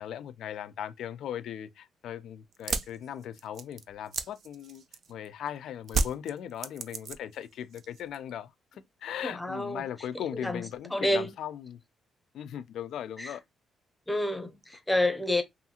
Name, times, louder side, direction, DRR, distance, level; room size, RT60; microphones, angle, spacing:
voice 1, 0.0-4.8 5.1-11.8 12.3-13.4, left 10 dB, 75° left, 0.4 m, -38 dB
sound 1, 2.5-5.3 5.9-7.4 7.7-8.3, right 4 dB, 60° right, 0.4 m, -32 dB
voice 2, 9.2-9.8 10.3-10.6 10.9-11.3 13.2-13.3 14.1-15.4, left 1 dB, 10° left, 0.7 m, -28 dB
2.7 x 2.4 x 2.8 m
cardioid pair, 90°, 0 cm